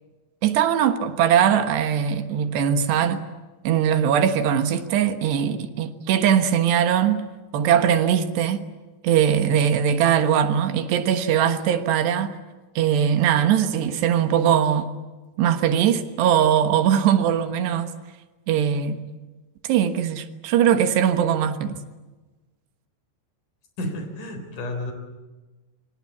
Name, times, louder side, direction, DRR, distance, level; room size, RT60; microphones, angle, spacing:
voice 1, 0.4-3.2 3.7-7.3 7.5-8.6 9.0-12.3 12.8-14.9 15.4-17.9 18.5-19.0 19.6-21.8, right 9 dB, 80° right, 3.5 m, -20 dB
voice 2, 23.8-24.9, left 1 dB, 50° left, 5.3 m, -31 dB
28.0 x 25.0 x 8.5 m
omnidirectional pair, 4.9 m